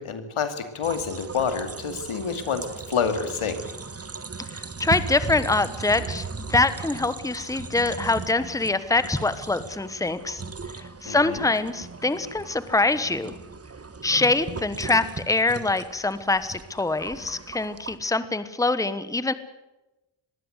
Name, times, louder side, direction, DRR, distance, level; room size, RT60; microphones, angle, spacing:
voice 1, 0.0-3.6 11.1-11.4, left 6 dB, 80° left, 8 dB, 2.6 m, -28 dB
sound 1, 0.8-18.0, right 4 dB, 30° right, 1.3 m, -37 dB
voice 2, 4.4-10.4 11.0-13.3 14.0-19.3, left 3 dB, 5° left, 13 dB, 1.1 m, -24 dB
21.5 x 16.5 x 8.1 m, 1.0 s
cardioid pair, 75°, 49 cm